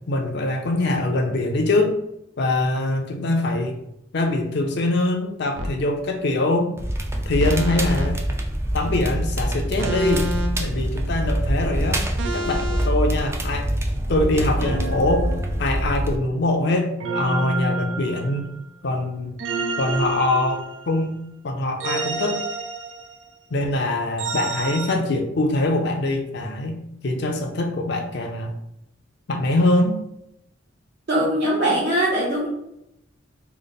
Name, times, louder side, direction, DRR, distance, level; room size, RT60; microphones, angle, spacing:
voice 1, 0.1-1.9 2.4-3.8 4.1-6.7 7.3-8.2 8.7-10.3 10.6-12.1 12.3-13.7 14.1-15.3 15.6-18.5 18.8-19.3 19.8-21.2 21.4-22.4 23.5-28.5 29.3-30.0, left 2 dB, 60° left, 4 dB, 0.6 m, -23 dB
sound 1, 5.6-5.8 7.4-8.1 9.8-10.7 12.2-12.9 14.6-16.1 17.0-18.6 19.4-21.0 21.8-23.3 24.2-24.9, right 1 dB, 75° right, 0.5 m, -29 dB
Crackle, 6.8-16.2, right 1 dB, 15° right, 0.4 m, -25 dB
voice 2, 31.1-32.5, right 1 dB, 60° right, -8 dB, 0.8 m, -21 dB
3.3 x 2.0 x 4.0 m, 0.81 s
head